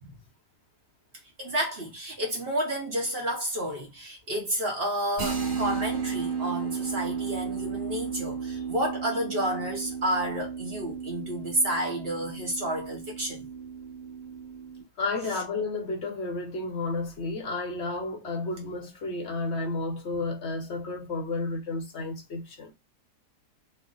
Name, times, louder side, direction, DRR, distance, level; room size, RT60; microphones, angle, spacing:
voice 1, 1.4-13.4, right 1 dB, 45° right, 1.0 m, -30 dB
sound 1, 5.2-14.8, right 6 dB, 75° right, 1.8 m, -34 dB
voice 2, 15.0-22.7, left 3 dB, 50° left, 0.9 m, -32 dB
3.1 x 2.4 x 3.8 m
omnidirectional pair, 1.8 m